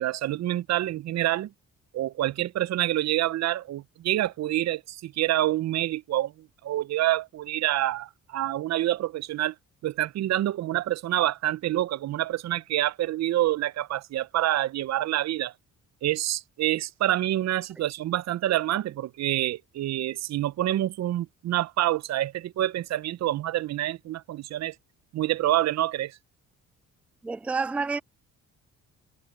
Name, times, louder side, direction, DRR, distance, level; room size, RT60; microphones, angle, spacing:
voice 1, 0.0-1.5 1.9-9.5 9.8-15.5 16.0-24.7 25.1-26.2, right 14 dB, 60° right, 0.6 m, -27 dB
voice 2, 27.2-28.0, right 4 dB, 5° right, 0.4 m, -28 dB
cardioid pair, 90°, 30 cm